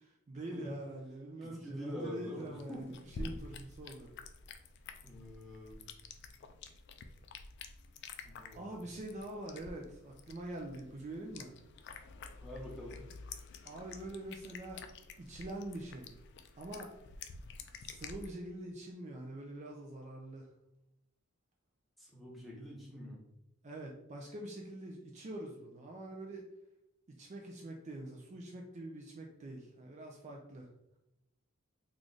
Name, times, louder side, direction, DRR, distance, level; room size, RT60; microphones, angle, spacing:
voice 1, 0.0-4.1 8.5-11.6 13.6-14.8 15.2-16.1 16.5-16.9 17.8-20.5 23.6-26.4 27.1-30.7, right 1 dB, 35° right, 0 dB, 0.4 m, -45 dB
voice 2, 1.4-2.8 3.2-3.3 5.0-5.8 8.2-8.9 12.4-13.0 22.0-23.2, equal, ahead, -4 dB, 1.0 m, -45 dB
sound 1, 2.4-18.3, left 4 dB, 55° left, 0.3 m, -50 dB
3.2 x 2.4 x 3.9 m, 0.85 s
head